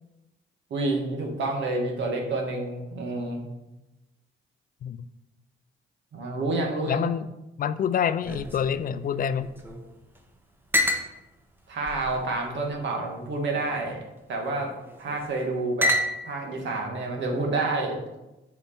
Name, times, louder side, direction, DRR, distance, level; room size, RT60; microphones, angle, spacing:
voice 1, 0.7-3.4 6.1-7.1 11.7-14.0 14.3-14.7 15.0-15.9 16.2-18.0, right 2 dB, 65° right, 1 dB, 1.7 m, -28 dB
voice 2, 6.9-7.3 7.6-9.5, left 8 dB, 45° left, 14 dB, 0.4 m, -27 dB
sound 1, 8.2-9.9 10.1-10.2 10.7-11.1 11.8-12.7 13.5-13.9 14.9-15.3 15.8-16.5, left 1 dB, 10° right, 0.9 m, -29 dB
6.8 x 4.6 x 4.3 m, 0.98 s
cardioid pair, 90°, 20 cm